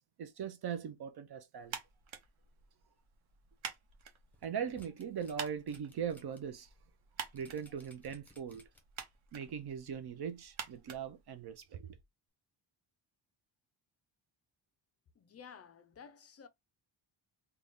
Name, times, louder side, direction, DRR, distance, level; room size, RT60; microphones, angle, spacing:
voice 1, 0.0-1.8 4.4-6.7 7.3-8.7 9.3-12.0, right 7 dB, 55° right, 0.5 m, -40 dB
sound 1, 1.6-11.9, right 7 dB, 70° right, 1.0 m, -49 dB
sound 2, 4.3-6.4 6.8-6.9 7.4-9.0 9.5-9.6, equal, 5° left, 0.8 m, -61 dB
voice 2, 15.2-16.5, left 6 dB, 35° left, 0.4 m, -53 dB
3.9 x 2.3 x 3.4 m
wide cardioid pair, 165°, 48 cm